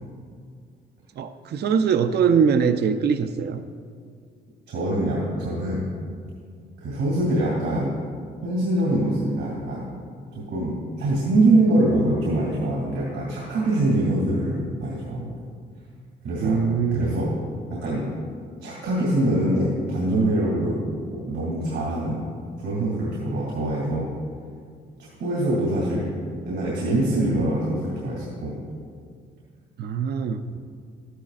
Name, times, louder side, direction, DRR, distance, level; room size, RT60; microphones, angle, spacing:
voice 1, 1.2-3.6 16.4-17.1 29.8-30.4, right 6 dB, 55° right, 9 dB, 0.5 m, -22 dB
voice 2, 4.7-5.9 6.8-7.9 8.4-9.8 10.3-15.3 16.2-16.6 16.9-17.3 17.7-18.1 18.6-20.8 21.1-22.2 22.6-24.1 25.2-26.1 26.4-28.5, right 1 dB, 85° right, -5 dB, 2.6 m, -24 dB
12.5 x 11.0 x 2.5 m, 2.1 s
cardioid pair, 90°, 20 cm